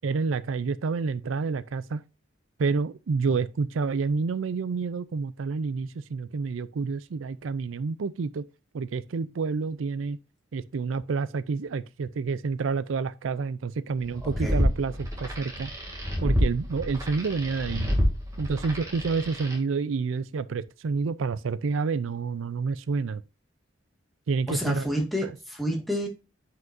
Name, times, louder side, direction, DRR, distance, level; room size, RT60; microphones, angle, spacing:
voice 1, 0.0-2.0 2.6-8.4 8.7-10.2 10.5-15.7 16.2-17.9 18.4-23.2 24.3-24.9 25.2-25.3, right 4 dB, 85° right, 0.4 m, -29 dB
sound 1, 14.1-19.6, equal, 15° right, 2.3 m, -28 dB
voice 2, 14.2-14.6 24.5-26.1, equal, ahead, 1.9 m, -29 dB
9.3 x 5.6 x 2.6 m
head